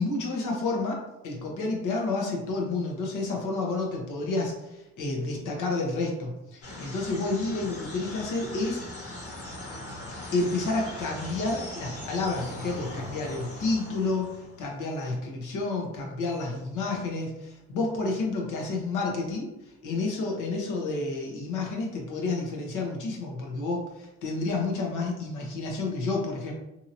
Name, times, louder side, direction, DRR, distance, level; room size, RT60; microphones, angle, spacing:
voice 1, 0.0-8.8 9.6-9.8 10.3-19.5 19.8-26.5, left 3 dB, 80° left, -1 dB, 0.9 m, -30 dB
sound 1, 6.6-14.7, left 1 dB, 50° left, 1.3 m, -40 dB
2.8 x 2.8 x 2.6 m, 0.94 s
cardioid pair, 90°, 30 cm